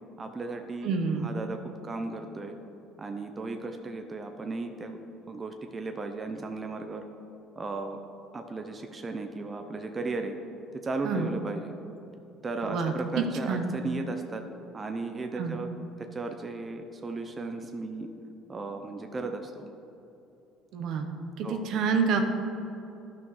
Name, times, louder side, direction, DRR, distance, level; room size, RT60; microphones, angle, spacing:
voice 1, 0.2-0.9 1.2-1.6 1.8-2.5 3.0-5.0 5.3-7.0 7.6-8.0 8.3-10.3 10.7-11.7 12.4-14.4 14.7-15.7 16.0-18.1 18.5-19.6 21.4-21.7, right 3 dB, 30° right, 5 dB, 0.6 m, -35 dB
voice 2, 0.8-1.3 11.0-11.3 12.6-13.7 15.4-15.6 20.7-21.1 21.4-22.2, right 5 dB, 65° right, 5 dB, 0.9 m, -28 dB
12.0 x 6.0 x 3.1 m, 2.9 s
supercardioid pair, 90°, 0 cm